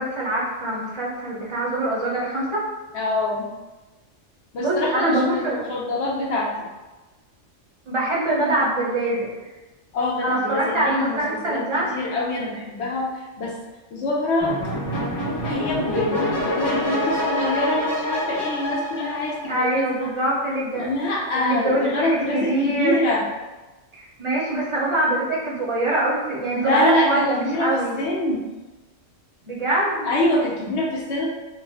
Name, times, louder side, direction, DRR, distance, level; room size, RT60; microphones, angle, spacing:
voice 1, 0.0-2.6 4.6-5.6 7.9-9.3 10.2-11.9 19.5-20.9 21.3-23.0 23.9-28.0 29.4-30.1, right 1 dB, 35° right, -5 dB, 0.6 m, -24 dB
voice 2, 2.9-3.5 4.5-6.5 9.9-13.6 13.9-14.6 15.4-20.1 20.7-23.2 26.5-28.4 30.0-31.3, left 2 dB, 65° left, -3 dB, 0.9 m, -25 dB
sound 1, 14.4-19.9, left 1 dB, 15° left, 0.8 m, -26 dB
2.5 x 2.1 x 3.4 m, 1.1 s
omnidirectional pair, 1.3 m